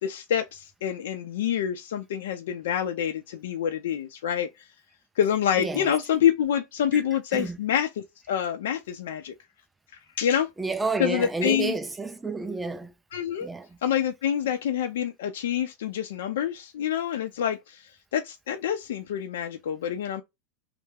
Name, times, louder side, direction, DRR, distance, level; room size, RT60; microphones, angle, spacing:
voice 1, 0.0-4.5 5.2-9.3 10.2-10.5 11.0-11.7 13.1-13.5 13.8-20.2, left 9 dB, 85° left, 0.5 m, -27 dB
voice 2, 5.6-5.9 6.9-7.0 7.3-7.6 10.6-12.9 13.4-13.8, right 3 dB, 10° right, 0.4 m, -30 dB
3.3 x 2.0 x 3.4 m
supercardioid pair, 145°, 0 cm